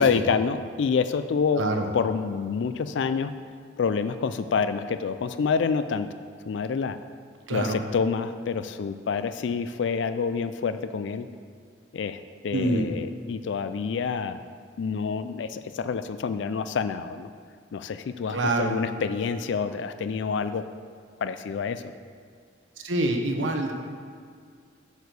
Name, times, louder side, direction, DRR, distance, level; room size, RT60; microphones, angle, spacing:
voice 1, 0.0-1.6 1.9-3.3 3.8-6.1 6.5-7.0 7.5-11.3 11.9-12.2 12.4-14.4 14.8-17.3 17.7-20.6 21.2-21.8, left 5 dB, 70° left, 11 dB, 0.4 m, -27 dB
voice 2, 7.5-7.8 12.5-12.9 18.3-18.8 22.8-23.7, right 2 dB, 85° right, 3 dB, 1.0 m, -26 dB
8.1 x 4.8 x 6.7 m, 2.1 s
head